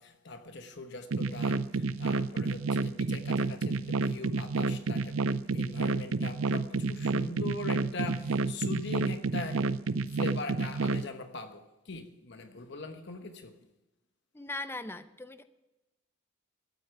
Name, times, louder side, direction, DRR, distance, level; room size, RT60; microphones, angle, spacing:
voice 1, 0.0-9.7 10.1-13.5, left 3 dB, 55° left, 1.0 m, -41 dB
sound 1, 1.1-11.0, right 3 dB, 75° right, 0.5 m, -29 dB
voice 2, 14.3-15.4, left 2 dB, 10° left, 0.6 m, -39 dB
13.0 x 8.4 x 7.8 m
head